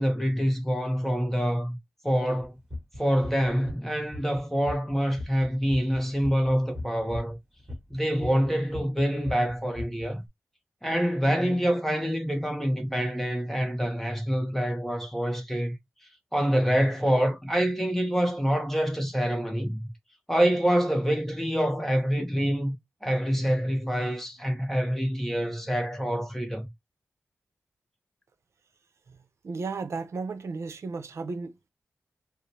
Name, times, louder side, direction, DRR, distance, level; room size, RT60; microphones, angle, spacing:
voice 1, 0.0-1.8 2.0-2.6 3.0-7.4 7.9-10.2 10.8-15.7 16.3-19.9 20.3-22.7 23.0-26.7, equal, 5° left, 0.9 m, -26 dB
sound 1, 2.4-4.4 4.7-8.5 8.7-10.1, left 1 dB, 15° right, 1.6 m, -37 dB
voice 2, 29.4-31.7, right 4 dB, 65° right, 0.7 m, -34 dB
4.9 x 2.0 x 2.7 m
wide cardioid pair, 120°, 5 cm